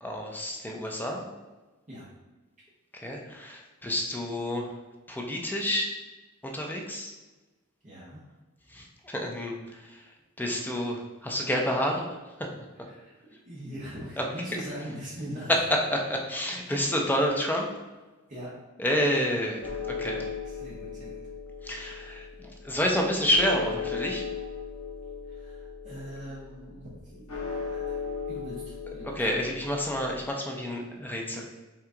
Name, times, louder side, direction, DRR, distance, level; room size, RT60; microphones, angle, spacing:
voice 1, 0.0-1.3 2.9-4.7 5.1-5.9 6.4-7.1 8.7-10.1 10.4-12.1 12.4-12.5 14.2-14.3 15.9-17.7 18.8-20.3 21.6-24.3 29.1-31.5, equal, 10° left, 0 dB, 0.5 m, -29 dB
voice 2, 7.8-8.2 12.7-15.6 16.7-16.8 18.3-18.5 20.4-21.2 25.3-29.3, equal, 35° right, -8 dB, 1.0 m, -42 dB
sound 1, 19.6-30.2, left 5 dB, 90° left, 0.9 m, -37 dB
5.8 x 2.4 x 3.8 m, 1.2 s
head